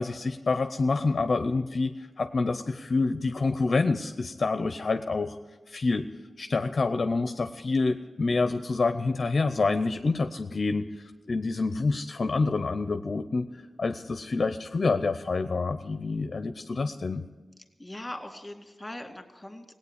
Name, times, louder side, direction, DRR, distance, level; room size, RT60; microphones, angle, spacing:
voice 1, 0.0-5.4 5.7-6.0 6.4-10.9 11.3-17.2, left 3 dB, 55° left, 8 dB, 0.6 m, -27 dB
voice 2, 17.8-19.8, left 1 dB, 15° left, 4 dB, 2.2 m, -40 dB
18.0 x 8.8 x 8.1 m, 1.3 s
cardioid pair, 65°, 0 cm